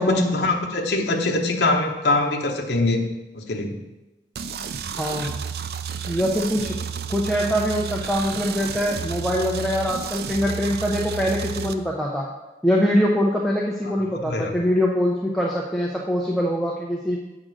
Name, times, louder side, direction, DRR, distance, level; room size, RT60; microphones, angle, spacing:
voice 1, 0.0-3.1 3.3-3.8 14.1-14.5, left 2 dB, 75° left, 2 dB, 0.9 m, -23 dB
sound 1, 4.3-11.7, right 7 dB, 60° right, 0.4 m, -31 dB
voice 2, 5.0-5.4 6.1-6.8 7.1-12.3 12.6-17.2, equal, ahead, -3 dB, 0.5 m, -23 dB
7.7 x 3.8 x 6.2 m, 1.1 s
head